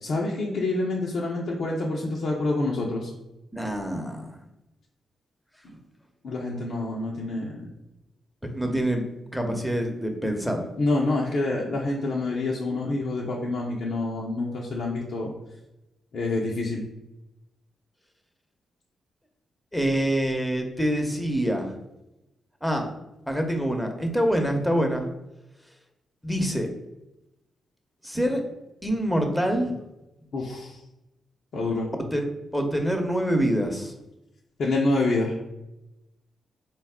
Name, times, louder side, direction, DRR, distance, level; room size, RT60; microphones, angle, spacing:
voice 1, 0.0-3.1 5.6-5.7 6.2-7.7 10.8-15.3 16.1-16.8 30.3-30.8 31.5-31.9 34.6-35.4, left 2 dB, 65° left, -3 dB, 0.6 m, -27 dB
voice 2, 3.5-4.4 8.5-9.0 9.3-10.6 19.7-21.7 22.6-22.9 23.3-25.1 26.2-26.7 28.0-28.4 28.8-29.7 32.1-32.2 32.5-33.9, equal, 5° left, 3 dB, 0.9 m, -25 dB
4.0 x 2.3 x 3.6 m, 0.92 s
hypercardioid pair, 40°, 0 cm